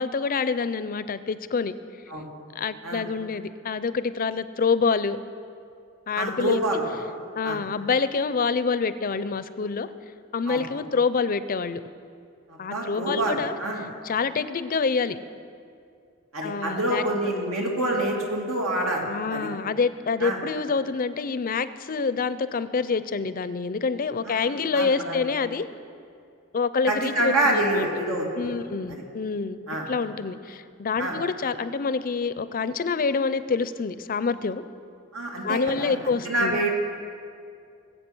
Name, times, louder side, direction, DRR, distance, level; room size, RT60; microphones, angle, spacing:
voice 1, 0.0-1.7 2.5-5.2 6.1-6.6 7.4-9.9 10.3-11.8 12.6-13.5 14.0-15.2 16.4-17.0 19.0-25.6 26.5-27.9 28.4-29.6 29.9-34.6 35.4-36.6, left 5 dB, 45° left, 14 dB, 0.5 m, -26 dB
voice 2, 6.1-6.8 7.4-7.6 10.5-10.6 12.5-13.8 16.3-19.5 20.2-20.4 24.2-24.4 24.7-25.2 26.9-28.5 28.9-29.0 29.7-29.9 31.0-31.1 35.1-36.7, right 1 dB, 90° right, -1 dB, 2.9 m, -27 dB
21.0 x 8.2 x 6.2 m, 2.3 s
head